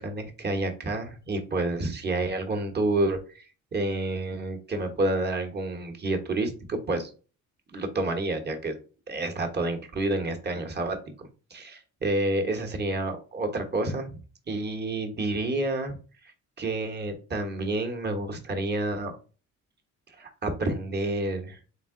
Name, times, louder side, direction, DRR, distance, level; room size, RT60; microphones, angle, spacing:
voice 1, 0.0-3.5 3.7-7.1 7.7-8.8 9.1-14.1 14.5-16.0 16.6-19.1 20.1-21.6, right 2 dB, 35° right, 4 dB, 1.2 m, -29 dB
3.8 x 3.7 x 3.7 m, 0.36 s
cardioid pair, 105°, 30 cm